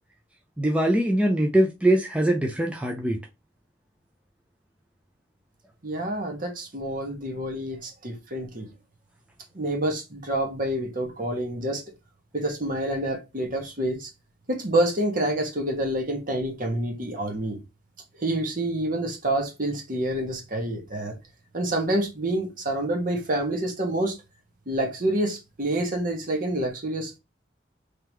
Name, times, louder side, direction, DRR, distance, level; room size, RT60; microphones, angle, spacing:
voice 1, 0.6-3.2, right 1 dB, 5° right, 0.6 m, -22 dB
voice 2, 5.8-8.6 9.5-11.8 12.3-14.1 14.5-17.6 18.2-21.2 21.5-24.2 24.7-27.1, right 1 dB, 45° right, 1.5 m, -27 dB
3.9 x 3.3 x 3.0 m
head